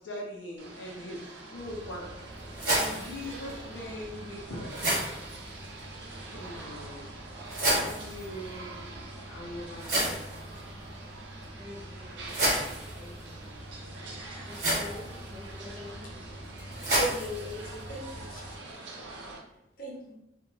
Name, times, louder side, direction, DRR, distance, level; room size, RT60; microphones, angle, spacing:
voice 1, 0.0-2.2 2.4-5.1 6.3-7.2 7.7-8.8 9.3-10.2, left 1 dB, 90° left, -2 dB, 0.5 m, -41 dB
sound 1, 0.6-19.4, right 2 dB, 85° right, 0.5 m, -45 dB
sound 2, 1.6-18.6, right 1 dB, 45° right, 1.0 m, -34 dB
voice 2, 11.6-13.5 14.5-16.3, left 2 dB, 20° right, -2 dB, 0.4 m, -47 dB
voice 3, 16.9-18.5 19.0-19.1 19.8-20.1, equal, 50° left, -3 dB, 0.8 m, -37 dB
2.9 x 2.1 x 2.5 m, 0.82 s
head